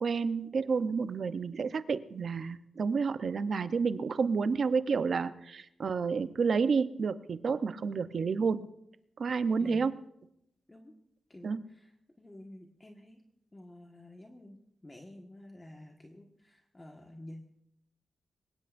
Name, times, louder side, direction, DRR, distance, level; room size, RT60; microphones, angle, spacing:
voice 1, 0.0-8.7 9.2-10.0 11.4-11.6, right 5 dB, 60° right, 12 dB, 0.7 m, -30 dB
voice 2, 11.3-13.2 13.5-17.4, left 1 dB, 20° left, 1 dB, 1.6 m, -50 dB
23.0 x 20.5 x 2.6 m, 0.78 s
wide cardioid pair, 100°, 0 cm